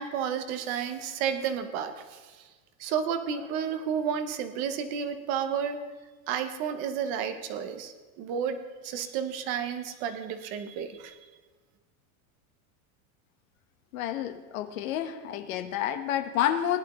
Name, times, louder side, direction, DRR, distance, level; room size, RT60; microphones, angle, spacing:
voice 1, 0.0-2.5 2.8-5.8 6.3-11.2, right 7 dB, 20° right, 9 dB, 0.3 m, -32 dB
voice 2, 13.9-16.8, left 11 dB, 70° left, 8 dB, 1.0 m, -29 dB
19.5 x 10.5 x 2.9 m, 1.4 s
supercardioid pair, 160°, 44 cm